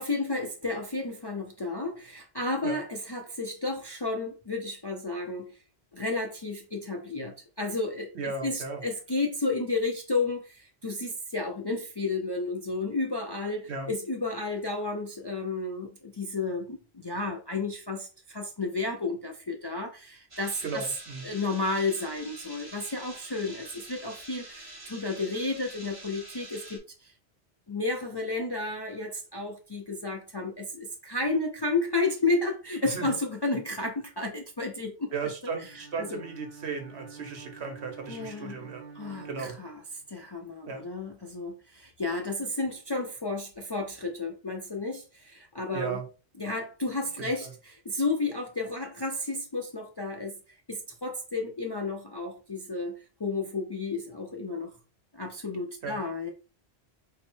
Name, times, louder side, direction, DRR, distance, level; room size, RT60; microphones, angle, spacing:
voice 1, 0.0-5.6 5.9-20.8 21.2-27.1 27.7-35.1 35.6-35.7 36.0-36.2 38.1-38.7 38.9-39.8 40.1-46.0 46.4-54.7 55.1-56.3, left 3 dB, 35° left, 2 dB, 0.4 m, -32 dB
voice 2, 8.1-8.8 13.7-13.9 20.6-21.3 32.8-33.1 35.1-38.8 39.2-39.6 40.7-40.9 45.7-46.0 47.2-47.5 55.8-56.0, right 4 dB, 75° right, 4 dB, 1.2 m, -36 dB
sound 1, 20.3-26.8, right 1 dB, 30° right, 1.2 m, -46 dB
Bowed string instrument, 35.6-40.2, right 5 dB, 50° right, 0.8 m, -47 dB
4.6 x 2.1 x 4.4 m, 0.33 s
omnidirectional pair, 1.1 m